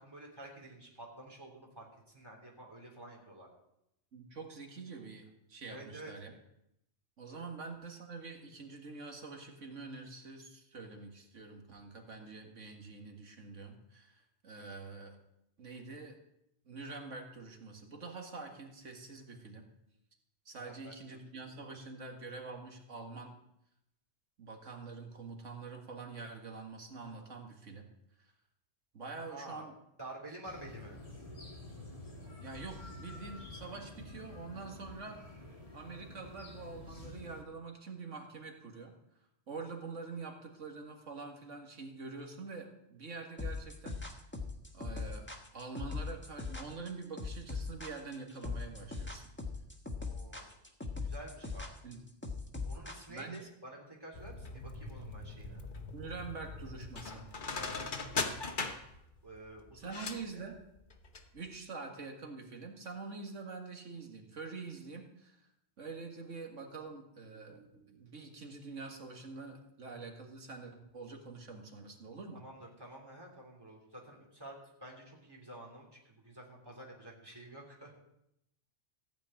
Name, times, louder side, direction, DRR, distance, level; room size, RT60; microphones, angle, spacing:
voice 1, 0.0-3.5 5.7-6.1 7.3-7.4 20.6-21.2 21.6-21.7 29.2-29.7 30.0-31.0 50.0-50.5 51.0-51.6 52.6-55.6 57.4-58.6 59.2-60.0 60.3-60.4 72.3-78.0, right 1 dB, 20° right, -2 dB, 3.1 m, -50 dB
voice 2, 4.1-6.3 7.2-15.2 15.6-16.2 16.6-19.6 20.5-23.4 24.4-27.9 28.2-28.3 28.9-29.7 32.4-35.2 35.7-38.9 39.5-44.0 44.7-45.3 45.5-49.3 51.8-52.0 53.1-53.4 55.9-57.2 59.7-60.6 61.3-65.5 65.8-72.4, right 4 dB, 75° right, 3 dB, 2.1 m, -46 dB
sound 1, 30.4-37.4, left 2 dB, 30° left, 2.2 m, -49 dB
sound 2, 43.4-53.4, left 4 dB, 10° left, 1.2 m, -40 dB
sound 3, 54.1-61.3 61.5-61.6, left 4 dB, 45° left, 1.1 m, -40 dB
15.0 x 5.1 x 9.0 m, 0.82 s
omnidirectional pair, 1.3 m